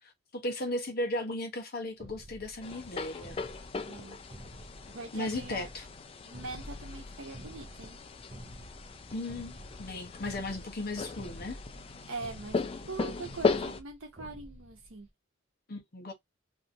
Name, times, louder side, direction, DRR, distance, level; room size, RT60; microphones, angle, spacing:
voice 1, 0.0-3.4 5.1-5.9 9.1-11.6 15.7-16.1, left 1 dB, 50° left, 0.8 m, -36 dB
sound 1, 2.0-15.1, right 1 dB, 30° right, 0.6 m, -50 dB
sound 2, 2.6-13.8, left 4 dB, 30° left, 0.3 m, -37 dB
voice 2, 3.9-4.2 4.9-5.7 6.3-8.0 12.1-15.1, right 3 dB, 80° right, 0.8 m, -42 dB
2.7 x 2.5 x 2.6 m
head